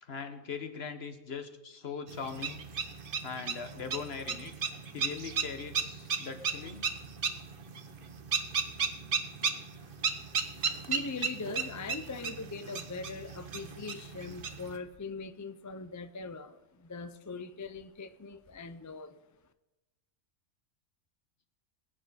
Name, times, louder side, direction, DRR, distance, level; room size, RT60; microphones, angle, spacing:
voice 1, 0.0-2.6 3.2-4.5 4.9-6.9, left 5 dB, 55° left, 8 dB, 1.4 m, -40 dB
sound 1, 2.1-14.8, right 6 dB, 50° right, 1.1 m, -35 dB
voice 2, 10.9-19.2, left 4 dB, 25° left, 11 dB, 0.4 m, -41 dB
20.5 x 9.3 x 4.1 m, 1.0 s
omnidirectional pair, 1.3 m